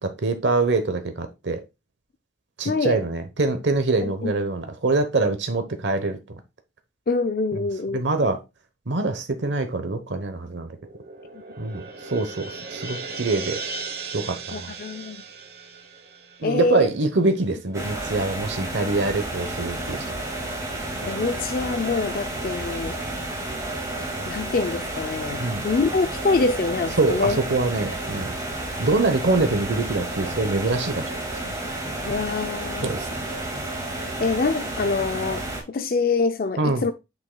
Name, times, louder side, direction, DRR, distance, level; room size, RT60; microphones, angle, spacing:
voice 1, 0.0-1.6 2.6-6.4 7.9-8.4 8.9-10.8 11.6-13.6 14.1-14.7 16.4-20.0 25.4-25.7 27.0-28.3 28.8-31.1 32.8-33.1 36.6-36.8, right 3 dB, 80° right, 1.0 m, -24 dB
voice 2, 2.6-3.0 4.0-4.3 7.1-8.0 14.5-15.2 16.4-16.9 21.0-23.0 24.3-27.4 32.0-32.9 34.2-36.9, left 4 dB, 50° left, 0.4 m, -25 dB
sound 1, 10.7-17.2, right 4 dB, 60° right, 1.0 m, -37 dB
sound 2, 17.7-35.6, right 1 dB, 20° right, 2.0 m, -31 dB
8.2 x 6.3 x 2.2 m
head